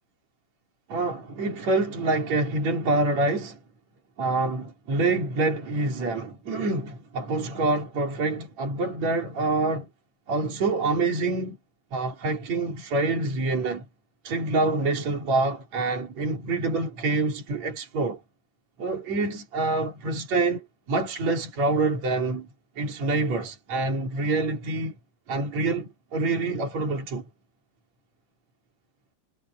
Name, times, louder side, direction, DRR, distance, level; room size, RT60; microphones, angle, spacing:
voice 1, 0.9-3.6 4.2-9.9 10.3-11.6 11.9-13.8 14.2-18.2 18.8-22.5 22.8-24.9 25.3-27.2, right 3 dB, 50° right, 4.9 m, -26 dB
omnidirectional pair, 3.9 m